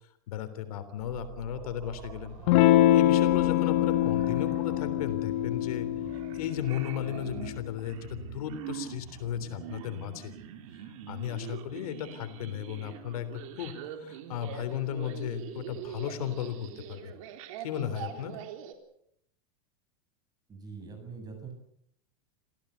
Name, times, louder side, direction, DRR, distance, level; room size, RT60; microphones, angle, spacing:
voice 1, 0.3-2.4 2.9-5.9 6.3-10.4 10.7-17.1 17.6-18.4, left 10 dB, 80° left, 10 dB, 3.5 m, -35 dB
sound 1, 1.0-18.7, right 9 dB, 65° right, 3.9 m, -44 dB
Electric guitar / Strum, 2.5-7.6, left 14 dB, 55° left, 1.6 m, -25 dB
voice 2, 20.5-21.5, right 5 dB, 20° right, 5 dB, 7.8 m, -43 dB
26.5 x 16.5 x 8.2 m, 0.71 s
supercardioid pair, 150°, 19 cm